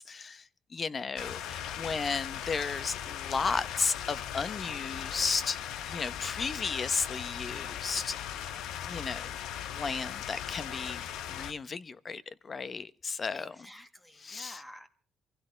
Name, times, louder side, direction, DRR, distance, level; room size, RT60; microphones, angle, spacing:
voice 1, 0.0-5.6 5.9-8.2 8.8-9.3 9.7-13.6 14.2-14.6, left 5 dB, 40° left, 0.9 m, -34 dB
sound 1, 1.2-11.5, left 10 dB, 85° left, 0.9 m, -38 dB
voice 2, 13.3-14.9, left 1 dB, 10° left, 1.6 m, -50 dB
24.5 x 16.0 x 3.3 m
cardioid pair, 90°, 0 cm